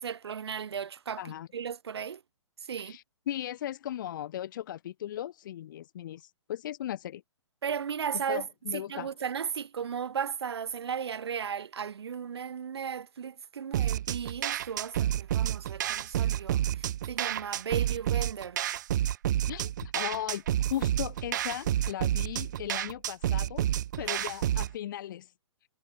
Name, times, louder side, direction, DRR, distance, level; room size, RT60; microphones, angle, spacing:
voice 1, 0.0-2.2 2.7-3.0 7.6-8.5 8.7-18.6 24.2-24.3, right 7 dB, 55° right, 1.1 m, -35 dB
voice 2, 1.2-1.5 2.8-7.2 8.3-9.1 19.5-23.7 24.0-25.3, left 11 dB, 40° left, 0.9 m, -37 dB
sound 1, 13.7-24.7, right 12 dB, 40° right, 0.5 m, -29 dB
figure-of-eight pair, 125°, 16 cm